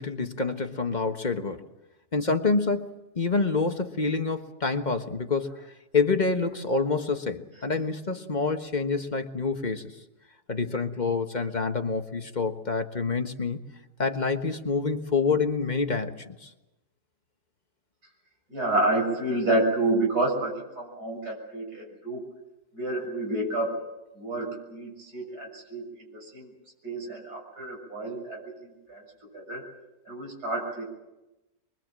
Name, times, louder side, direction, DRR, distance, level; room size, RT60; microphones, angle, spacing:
voice 1, 0.0-1.6 2.1-5.5 5.9-9.9 10.5-13.6 14.0-16.5, left 4 dB, 30° left, 6 dB, 1.4 m, -27 dB
voice 2, 18.5-22.2 22.7-23.8 24.2-26.5 26.8-29.0 29.3-29.6 30.1-30.8, right 2 dB, 85° right, -1 dB, 7.6 m, -29 dB
23.5 x 23.5 x 7.6 m, 1.0 s
omnidirectional pair, 1.7 m